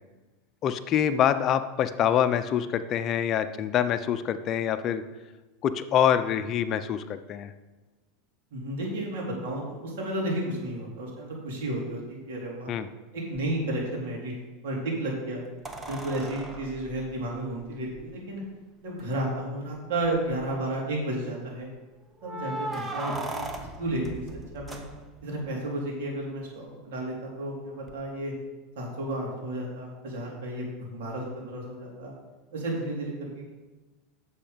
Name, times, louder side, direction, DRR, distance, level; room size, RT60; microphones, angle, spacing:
voice 1, 0.6-5.0 5.6-7.5 12.7-12.9, left 9 dB, 40° left, 10 dB, 0.7 m, -25 dB
voice 2, 8.5-12.7 13.1-14.3 14.6-15.4 15.9-18.4 18.8-21.7 22.2-24.2 24.5-24.8 25.2-28.3 28.7-32.1 32.5-33.5, right 1 dB, 75° right, -2 dB, 3.4 m, -32 dB
sound 1, 13.3-13.4 15.6-18.0 19.0-19.1 19.4-19.5 20.0-20.5 22.2-25.4 27.9-28.0, right 2 dB, 15° right, 1.0 m, -38 dB
8.3 x 7.3 x 5.2 m, 1.2 s
supercardioid pair, 130°, 0 cm